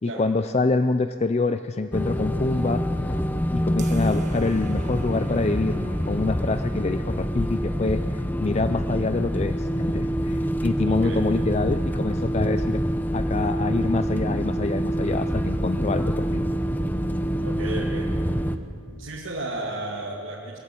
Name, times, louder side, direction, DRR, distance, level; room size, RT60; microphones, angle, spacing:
voice 1, 0.0-3.2 3.5-12.8 13.1-16.5, left 3 dB, 30° left, 10 dB, 0.4 m, -26 dB
sound 1, 1.9-18.6, equal, 10° left, 0.8 m, -26 dB
sound 2, 3.8-8.7, right 2 dB, 35° right, 1.4 m, -42 dB
voice 2, 10.8-11.2 17.4-18.1 18.9-20.6, right 2 dB, 75° right, -4 dB, 2.3 m, -33 dB
21.5 x 15.5 x 9.4 m, 2.4 s
head